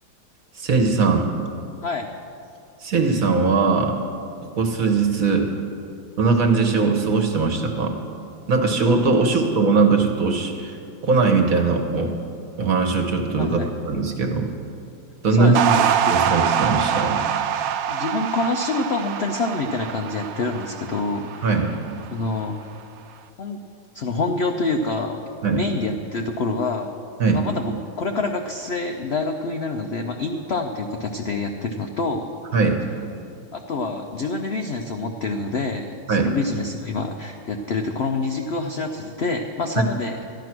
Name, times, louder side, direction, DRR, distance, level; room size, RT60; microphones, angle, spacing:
voice 1, 0.5-1.3 2.8-3.9 4.4-5.5 6.2-8.0 8.5-10.8 11.0-12.2 12.6-14.5 15.2-15.6 16.1-17.2 21.4-21.7 25.4-25.6 27.2-27.4 32.5-32.8 36.1-36.3 39.8-39.9, right 4 dB, 50° right, 4 dB, 1.5 m, -20 dB
voice 2, 13.4-13.7 15.3-16.1 17.9-21.6 22.1-22.6 23.4-23.6 23.9-25.2 25.5-26.9 27.3-32.3 33.5-40.1, left 3 dB, 80° left, 4 dB, 0.5 m, -26 dB
sound 1, 15.5-22.0, right 9 dB, 80° right, 1.3 m, -24 dB
13.0 x 11.0 x 6.0 m, 2.5 s
omnidirectional pair, 2.0 m